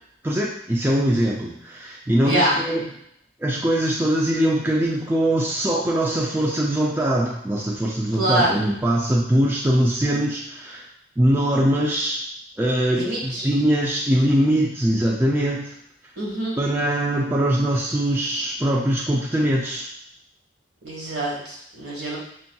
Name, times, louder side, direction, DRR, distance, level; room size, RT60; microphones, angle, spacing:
voice 1, 0.2-2.9 3.4-10.9 11.2-12.2 12.6-15.7 16.6-19.9, right 1 dB, 10° right, -4 dB, 0.3 m, -22 dB
voice 2, 2.2-2.6 8.1-8.6 12.9-13.5 16.2-16.6 20.8-22.2, right 1 dB, 70° right, -4 dB, 1.5 m, -24 dB
6.1 x 2.7 x 2.3 m, 0.71 s
head